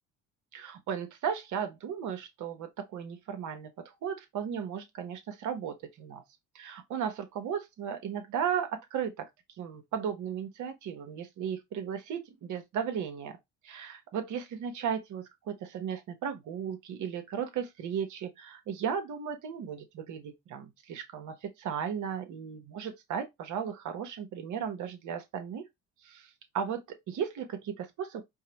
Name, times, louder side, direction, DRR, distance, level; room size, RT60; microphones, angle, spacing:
voice 1, 0.5-3.7 4.0-6.2 6.5-9.3 9.6-13.4 13.6-25.6 26.0-28.2, right 8 dB, 65° right, 1.0 m, -35 dB
4.6 x 2.1 x 2.9 m
supercardioid pair, 80°, 32 cm